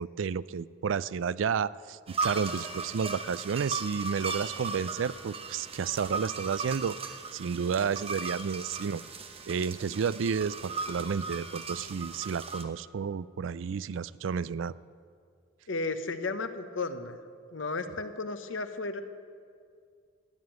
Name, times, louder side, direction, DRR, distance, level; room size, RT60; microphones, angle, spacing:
voice 1, 0.0-9.0 9.5-14.7, right 6 dB, 80° right, 19 dB, 0.4 m, -31 dB
sound 1, 2.1-12.6, right 4 dB, 30° right, 1.1 m, -37 dB
voice 2, 15.7-17.2 17.5-19.0, left 3 dB, 90° left, 9 dB, 1.0 m, -34 dB
14.5 x 9.7 x 9.2 m, 2.2 s
head